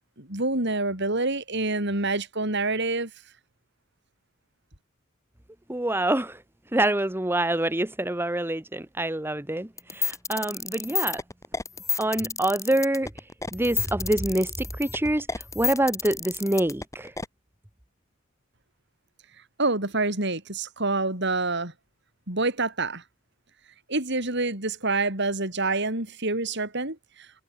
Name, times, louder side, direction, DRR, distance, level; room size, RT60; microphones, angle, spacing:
voice 1, 0.2-3.1 19.6-21.7 22.3-23.0 23.9-27.0, right 2 dB, 60° right, 7.5 m, -27 dB
voice 2, 5.7-6.4 6.7-11.2 12.0-17.1, right 1 dB, 10° right, 1.1 m, -26 dB
sound 1, 9.8-17.3, left 5 dB, 15° left, 1.7 m, -30 dB
head